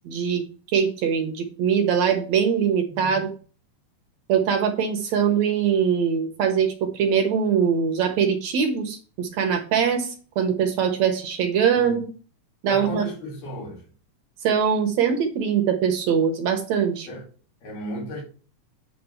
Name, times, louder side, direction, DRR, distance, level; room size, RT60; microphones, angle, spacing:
voice 1, 0.1-0.4 0.7-3.3 4.3-12.1 12.6-13.1 14.4-17.1, right 7 dB, 70° right, 2.0 m, -22 dB
voice 2, 12.6-13.8 17.1-17.2 17.6-18.2, equal, 80° left, 4.1 m, -35 dB
8.7 x 3.3 x 5.6 m
omnidirectional pair, 3.7 m